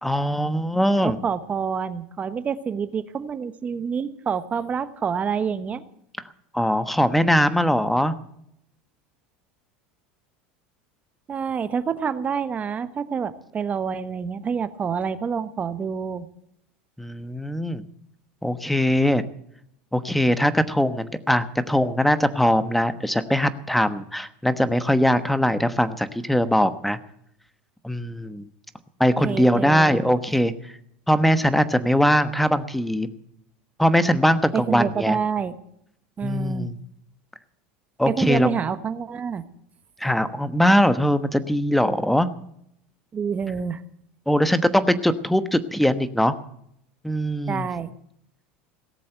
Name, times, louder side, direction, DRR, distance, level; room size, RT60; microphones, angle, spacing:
voice 1, 0.0-1.2 6.5-8.1 17.0-17.8 18.4-19.2 19.9-27.0 27.8-28.4 29.0-30.5 31.1-33.1 33.8-35.2 36.2-36.8 38.0-38.5 40.0-42.3 44.3-46.3 47.0-47.7, equal, ahead, 11 dB, 1.2 m, -21 dB
voice 2, 1.0-5.8 11.3-16.3 29.2-30.0 34.5-35.5 36.2-36.7 38.1-39.4 43.1-43.8 47.5-47.9, right 6 dB, 25° right, 12 dB, 1.1 m, -27 dB
18.0 x 7.6 x 8.9 m, 0.73 s
supercardioid pair, 110°, 5 cm